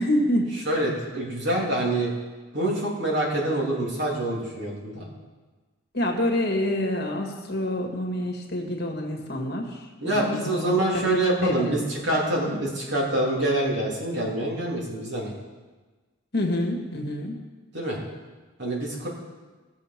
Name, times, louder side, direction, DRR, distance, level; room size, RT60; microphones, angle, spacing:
voice 1, 0.0-0.5 5.9-9.8 10.0-11.1 11.4-11.7 16.3-17.4, left 1 dB, 50° left, 1 dB, 1.8 m, -27 dB
voice 2, 0.6-2.1 2.5-5.1 10.0-15.3 17.7-18.0 18.6-19.1, right 1 dB, 55° right, -3 dB, 3.0 m, -26 dB
18.0 x 6.9 x 5.9 m, 1.3 s
head